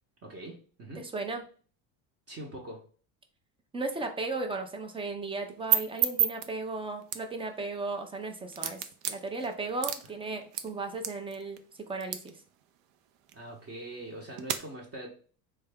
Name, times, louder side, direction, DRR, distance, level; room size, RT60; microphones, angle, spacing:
voice 1, 0.2-1.1 2.3-2.8 13.3-15.1, right 1 dB, 30° right, -1 dB, 0.9 m, -42 dB
voice 2, 0.9-1.4 3.7-11.6 11.9-12.4, right 3 dB, 10° right, 5 dB, 0.4 m, -35 dB
sound 1, 5.3-14.6, right 11 dB, 70° right, 0.6 m, -35 dB
3.4 x 2.3 x 3.4 m, 0.41 s
supercardioid pair, 105°, 47 cm